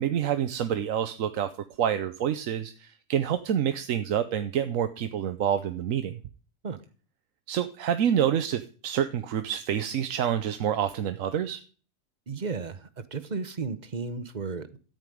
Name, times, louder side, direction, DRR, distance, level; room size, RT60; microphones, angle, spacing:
voice 1, 0.0-1.5 1.8-6.2 7.5-11.6, right 9 dB, 90° right, 10 dB, 1.2 m, -27 dB
voice 2, 12.3-14.8, right 4 dB, 40° right, 13 dB, 1.0 m, -34 dB
13.5 x 5.3 x 9.2 m, 0.40 s
omnidirectional pair, 1.3 m